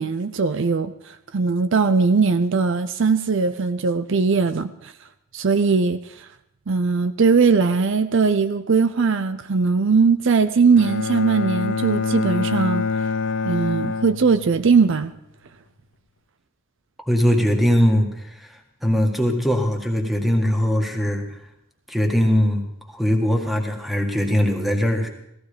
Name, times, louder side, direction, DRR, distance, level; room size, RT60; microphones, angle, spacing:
voice 1, 0.0-4.9 5.3-6.3 6.7-12.9 13.4-15.1, right 5 dB, 60° right, 12 dB, 0.6 m, -20 dB
Bowed string instrument, 10.8-14.8, left 5 dB, 60° left, 0.6 m, -26 dB
voice 2, 17.1-21.4 21.9-25.1, equal, ahead, 2 dB, 1.8 m, -21 dB
16.5 x 15.0 x 5.1 m, 0.79 s
head